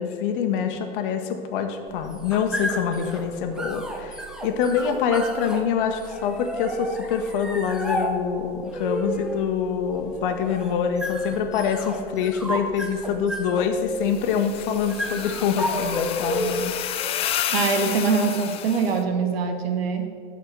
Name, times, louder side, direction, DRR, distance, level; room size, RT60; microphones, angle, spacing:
voice 1, 0.0-16.7, left 7 dB, 50° left, 6 dB, 1.0 m, -25 dB
sound 1, 1.9-16.8, equal, ahead, 0.8 m, -32 dB
sound 2, 14.1-19.0, left 10 dB, 20° left, 0.3 m, -30 dB
voice 2, 17.5-20.1, right 5 dB, 65° right, 6 dB, 1.2 m, -23 dB
7.0 x 6.6 x 6.6 m, 2.1 s
figure-of-eight pair, 85°, 33 cm